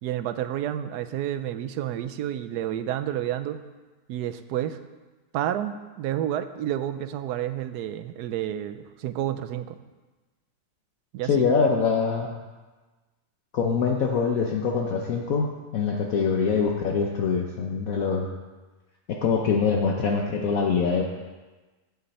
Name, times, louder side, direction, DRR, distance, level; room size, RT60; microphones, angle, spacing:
voice 1, 0.0-3.6 4.1-4.8 5.3-9.8 11.1-11.5, right 11 dB, 80° right, 11 dB, 1.2 m, -30 dB
voice 2, 11.3-12.4 13.5-18.3 19.1-21.0, left 5 dB, 60° left, 1 dB, 1.2 m, -24 dB
15.5 x 6.7 x 4.2 m, 1.3 s
omnidirectional pair, 1.8 m